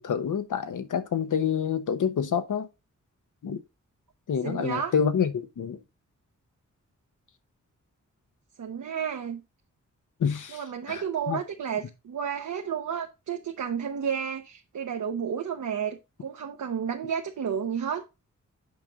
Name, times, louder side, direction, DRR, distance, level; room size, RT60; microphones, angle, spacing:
voice 1, 0.0-2.7 3.4-3.6 4.3-5.8 10.2-10.6 10.9-11.4, left 7 dB, 75° left, 1.1 m, -27 dB
voice 2, 4.4-4.9 8.6-9.4 10.5-18.0, right 7 dB, 75° right, 1.0 m, -31 dB
8.2 x 5.3 x 3.6 m
cardioid pair, 65°, 31 cm